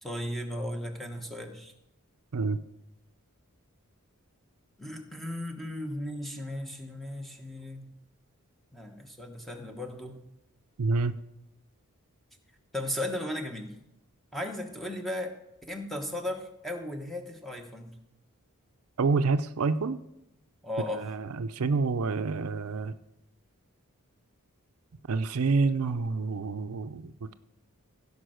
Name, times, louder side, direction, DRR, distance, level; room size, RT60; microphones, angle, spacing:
voice 1, 0.0-1.7 4.8-7.9 8.7-10.2 12.7-13.7 14.3-15.3 15.7-18.0 20.6-21.0, left 1 dB, ahead, 3 dB, 1.1 m, -36 dB
voice 2, 10.8-11.1 19.0-20.0 20.9-22.9 25.1-27.3, right 4 dB, 75° right, 11 dB, 0.5 m, -28 dB
16.5 x 5.4 x 6.4 m, 0.86 s
head